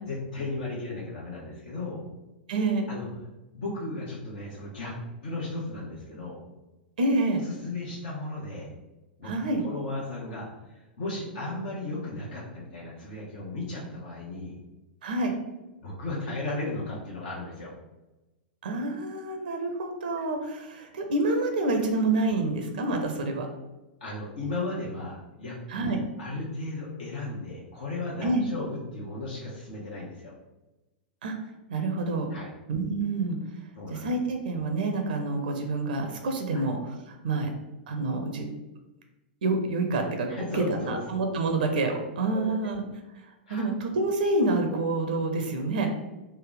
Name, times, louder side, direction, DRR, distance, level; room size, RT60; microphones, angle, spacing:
voice 1, 0.0-2.0 2.9-3.0 3.5-4.9 5.2-6.4 7.4-8.7 9.2-9.3 9.6-14.5 15.8-17.7 24.0-25.6 26.2-30.3 32.3-32.5 33.7-34.0 36.5-36.6 40.3-41.0 42.3-42.5 43.5-43.7, left 2 dB, 60° left, -5 dB, 0.8 m, -35 dB
voice 2, 2.5-2.9 7.0-7.4 9.2-9.6 15.0-15.4 18.6-23.5 25.7-26.0 28.2-28.4 31.2-31.4 31.7-32.3 32.7-33.4 33.9-37.5 37.9-38.5 39.4-42.8 43.2-45.9, right 2 dB, 65° right, 4 dB, 0.5 m, -27 dB
3.4 x 2.1 x 3.8 m, 1.0 s
figure-of-eight pair, 100°, 5 cm